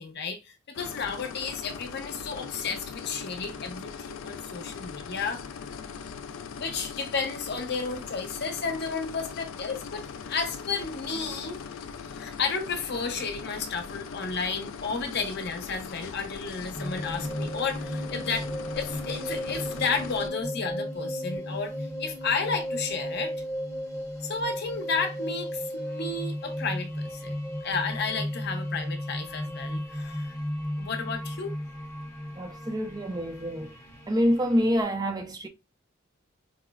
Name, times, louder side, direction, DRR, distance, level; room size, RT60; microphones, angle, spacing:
voice 1, 0.0-5.5 6.6-11.6 12.1-18.5 18.8-23.3 24.2-27.4 27.6-30.4 30.8-31.5, left 5 dB, 55° left, 0.7 m, -32 dB
sound 1, 0.7-20.3, left 6 dB, 75° left, 0.3 m, -40 dB
sound 2, 16.7-34.8, equal, 10° left, 0.7 m, -35 dB
voice 2, 32.4-33.8 34.1-35.5, equal, 20° right, 0.4 m, -26 dB
4.6 x 2.0 x 2.3 m
head